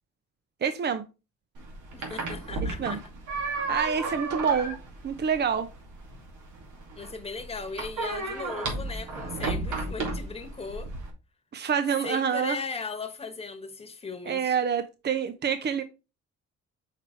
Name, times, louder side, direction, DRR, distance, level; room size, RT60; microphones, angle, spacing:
voice 1, 0.6-1.0 2.8-3.0 3.7-4.8 5.0-5.7 11.5-12.6 14.3-15.8, right 7 dB, 35° right, 0.7 m, -27 dB
sound 1, 1.6-11.1, right 3 dB, 80° right, 2.5 m, -34 dB
voice 2, 1.9-3.0 7.0-10.9 12.0-14.6, left 4 dB, 20° left, 1.3 m, -37 dB
5.9 x 4.6 x 4.4 m
cardioid pair, 90°, 30 cm